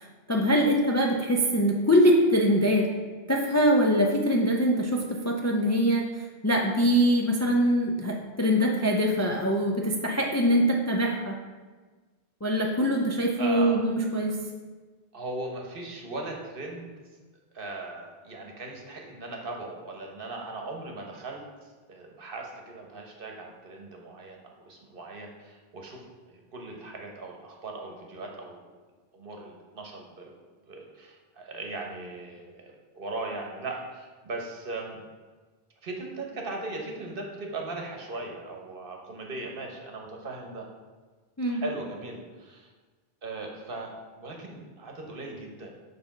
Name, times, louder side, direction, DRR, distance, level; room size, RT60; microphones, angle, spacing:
voice 1, 0.0-2.9 3.3-11.3 12.4-14.4 41.4-41.6, equal, 20° left, 0 dB, 0.4 m, -23 dB
voice 2, 13.4-13.8 15.1-16.9 17.5-28.6 29.1-30.3 30.7-35.0 35.8-40.7 41.5-42.7 43.2-43.9 44.2-45.7, right 2 dB, 60° right, 1 dB, 1.2 m, -38 dB
6.8 x 3.4 x 5.8 m, 1.4 s
omnidirectional pair, 1.1 m